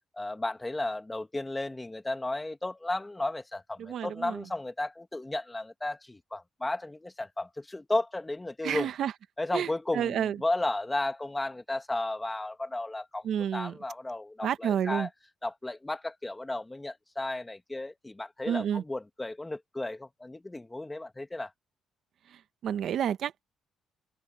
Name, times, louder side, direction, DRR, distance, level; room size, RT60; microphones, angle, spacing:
voice 1, 0.1-8.9 9.4-13.3 13.5-15.1 15.4-21.5, left 2 dB, 15° left, 2.1 m, -34 dB
voice 2, 3.8-4.4 8.6-9.1 9.5-10.4 13.2-13.7 14.4-15.1 18.5-18.8 22.6-23.4, right 9 dB, 70° right, 1.1 m, -30 dB
cardioid pair, 90°, 0 cm